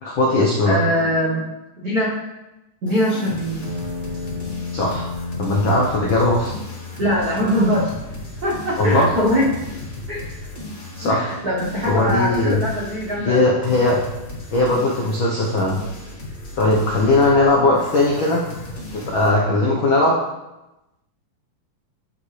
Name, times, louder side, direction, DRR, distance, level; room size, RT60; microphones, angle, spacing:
voice 1, 0.0-0.7 4.7-5.1 5.4-6.5 8.8-9.1 11.0-11.3 11.8-12.6 13.2-14.0 14.5-15.8 16.6-18.4 18.9-20.2, left 2 dB, 80° left, -3 dB, 1.1 m, -18 dB
voice 2, 0.6-1.5 1.8-2.1 2.8-3.6 7.0-7.9 8.4-9.5 10.1-10.3 11.0-13.5 17.8-17.9, equal, 85° right, -5 dB, 0.8 m, -22 dB
sound 1, 2.9-19.4, left 1 dB, 35° left, 1.1 m, -36 dB
sound 2, 3.6-17.6, left 5 dB, 70° right, 2.4 m, -37 dB
11.5 x 5.3 x 3.2 m, 0.97 s
omnidirectional pair, 3.7 m